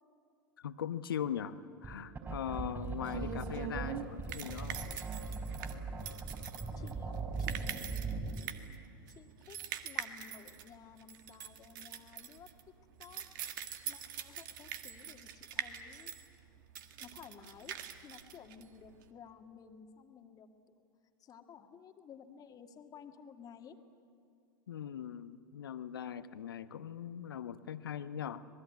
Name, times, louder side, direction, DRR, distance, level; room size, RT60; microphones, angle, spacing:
voice 1, 0.6-1.6 1.8-4.9 24.7-28.4, left 9 dB, 75° left, 13 dB, 0.9 m, -40 dB
sound 1, 1.8-8.5, right 3 dB, 20° right, 4.6 m, -39 dB
sound 2, 2.4-19.1, right 9 dB, 60° right, 1.7 m, -44 dB
voice 2, 6.8-8.3 9.1-12.5 13.0-13.3 13.9-16.1 17.0-17.8 18.0-20.8 21.2-23.8, left 7 dB, 30° left, 6 dB, 1.9 m, -54 dB
26.0 x 19.5 x 9.3 m, 2.5 s
hypercardioid pair, 90°, 12 cm